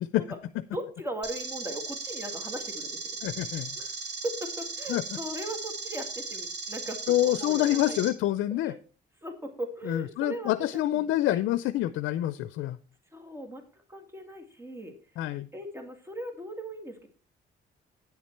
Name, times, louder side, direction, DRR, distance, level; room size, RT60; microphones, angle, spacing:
voice 1, 0.7-3.0 3.8-8.1 8.6-8.8 9.2-11.4 13.1-14.9 15.5-17.1, right 1 dB, 15° right, 5 dB, 2.1 m, -39 dB
sound 1, 1.2-8.1, right 4 dB, 60° right, 3.0 m, -37 dB
voice 2, 3.2-3.8 4.9-5.0 7.1-8.7 9.8-12.8 15.2-15.5, left 14 dB, 85° left, 13 dB, 0.5 m, -27 dB
9.1 x 7.3 x 4.5 m, 0.36 s
cardioid pair, 90°, 20 cm